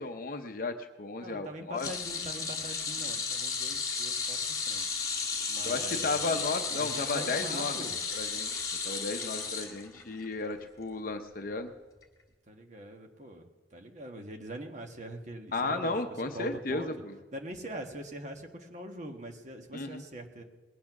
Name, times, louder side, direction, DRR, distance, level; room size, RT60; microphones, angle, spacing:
voice 1, 0.0-1.9 5.6-7.7 8.1-8.5 8.8-11.7 15.5-17.2 19.7-20.0, left 3 dB, 50° left, 6 dB, 0.7 m, -34 dB
voice 2, 1.2-4.9 5.5-6.4 6.7-8.0 12.5-15.9 16.2-16.9 17.3-20.4, right 1 dB, 40° right, 3 dB, 1.4 m, -43 dB
sound 1, 1.8-10.2 10.6-10.8 12.0-12.1, left 5 dB, 20° left, 1.7 m, -34 dB
20.5 x 8.6 x 5.9 m, 1.3 s
head